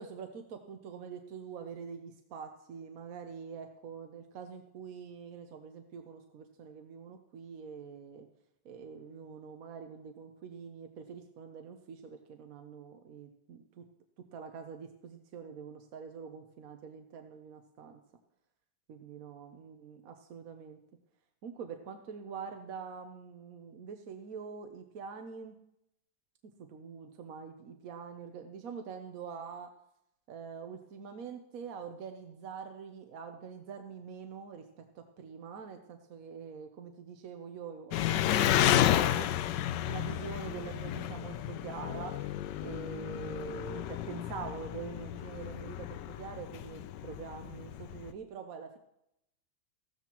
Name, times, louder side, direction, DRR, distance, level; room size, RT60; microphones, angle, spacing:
voice 1, 0.0-8.3 8.6-13.8 14.3-18.0 18.9-20.8 21.4-25.5 26.6-29.7 30.3-39.4 39.8-42.1 42.6-48.8, right 6 dB, 60° right, 6 dB, 1.0 m, -45 dB
Engine, 37.9-48.1, left 12 dB, 75° left, 1.1 m, -32 dB
15.0 x 13.0 x 3.0 m, 0.81 s
omnidirectional pair, 2.2 m